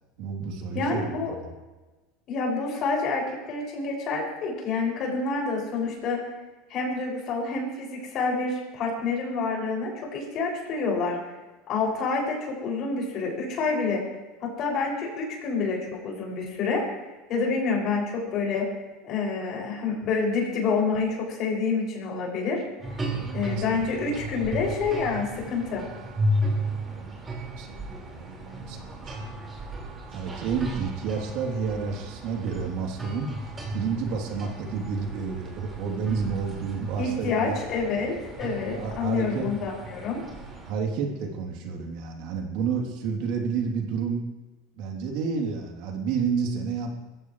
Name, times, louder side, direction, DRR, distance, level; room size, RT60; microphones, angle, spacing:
voice 1, 0.2-1.5 23.1-23.6 26.5-26.6 26.9-27.2 27.6-29.3 30.1-33.3 33.7-37.6 38.7-39.5 40.6-44.2 44.8-46.9, right 5 dB, 65° right, 1 dB, 3.2 m, -30 dB
voice 2, 0.7-1.4 2.3-6.2 6.7-11.2 11.7-14.0 14.4-16.8 17.3-18.7 19.0-22.6 23.3-25.8 37.0-40.2, left 4 dB, 45° left, -2 dB, 6.6 m, -28 dB
sound 1, 22.8-40.7, right 1 dB, 20° right, 5.0 m, -34 dB
22.5 x 15.5 x 3.3 m, 1.1 s
supercardioid pair, 135°, 0 cm